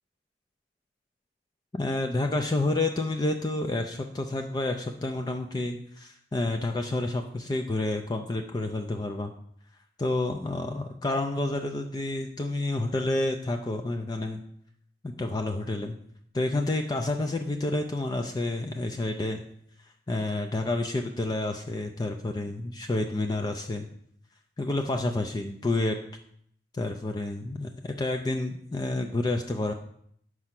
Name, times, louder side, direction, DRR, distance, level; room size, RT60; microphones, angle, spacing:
voice 1, 1.7-9.3 10.0-14.4 15.0-15.9 16.3-19.4 20.1-23.9 24.6-26.0 26.7-29.7, left 2 dB, 25° left, 4 dB, 0.4 m, -29 dB
5.4 x 4.8 x 5.9 m, 0.68 s
head